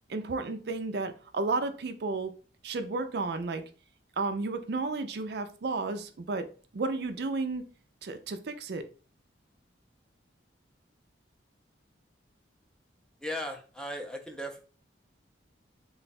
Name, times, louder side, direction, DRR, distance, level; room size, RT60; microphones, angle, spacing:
voice 1, 0.1-2.3 2.6-3.6 4.2-6.5 6.7-7.6 8.0-8.8, right 3 dB, 60° right, 8 dB, 0.4 m, -32 dB
voice 2, 13.2-14.6, equal, 5° left, 3 dB, 0.5 m, -37 dB
3.9 x 2.3 x 4.0 m, 0.38 s
head